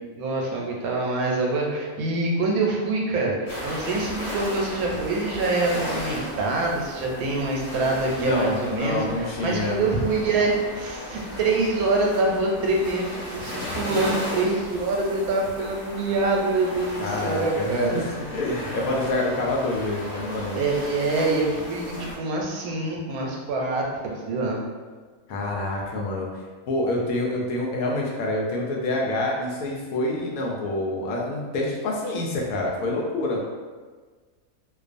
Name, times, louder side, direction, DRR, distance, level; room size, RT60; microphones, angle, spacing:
voice 1, 0.2-18.0 20.5-24.6, right 2 dB, 90° right, -1 dB, 1.0 m, -25 dB
sound 1, 3.5-22.1, equal, 40° left, 1.0 m, -35 dB
voice 2, 8.2-9.8 17.0-17.7 17.9-20.6 25.3-26.3 26.7-33.4, left 2 dB, 90° left, -2 dB, 1.0 m, -27 dB
2.5 x 2.3 x 2.5 m, 1.4 s
omnidirectional pair, 1.5 m